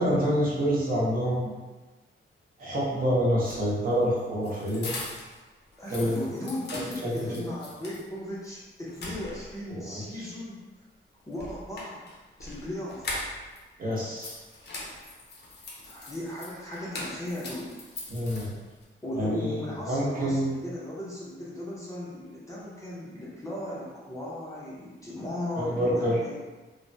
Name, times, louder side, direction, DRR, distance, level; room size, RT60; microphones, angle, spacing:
voice 1, 0.0-1.5 2.6-4.9 5.9-6.2 7.0-7.3 9.7-10.0 13.8-14.4 18.1-18.5 19.2-19.6 19.9-20.6 25.6-26.1, equal, 45° right, -6 dB, 0.8 m, -27 dB
sound 1, 3.4-5.4 5.7-8.1 8.4-8.5 8.9-9.7 11.3-13.6 13.9-18.8, left 2 dB, 55° left, 0.6 m, -41 dB
voice 2, 5.8-10.6 11.3-12.0 12.4-13.0 15.8-17.7 19.0-26.3, left 1 dB, 15° left, -8 dB, 0.5 m, -36 dB
3.2 x 2.1 x 2.6 m, 1.2 s
wide cardioid pair, 170°, 21 cm